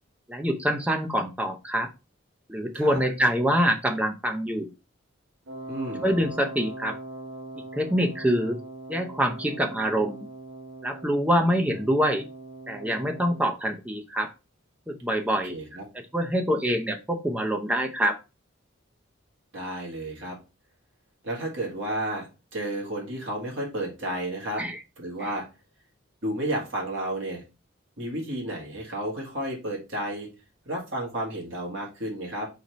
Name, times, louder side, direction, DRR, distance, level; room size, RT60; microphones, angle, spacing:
voice 1, 0.3-1.9 2.5-4.7 6.0-7.0 7.7-8.6 8.9-10.3 10.8-12.2 12.7-14.3 14.9-15.6 15.9-18.2 24.6-24.8 25.2-25.3, equal, 5° right, 3 dB, 0.5 m, -25 dB
Wind instrument woodwind instrument, 5.5-13.5, right 2 dB, 90° right, 1.0 m, -41 dB
voice 2, 5.7-6.1 15.4-15.8 19.5-20.4 21.2-22.3 22.5-24.6 25.0-25.5 26.2-27.4 28.0-30.3 30.7-32.5, right 1 dB, 65° right, -1 dB, 1.8 m, -32 dB
4.1 x 4.1 x 3.0 m, 0.28 s
head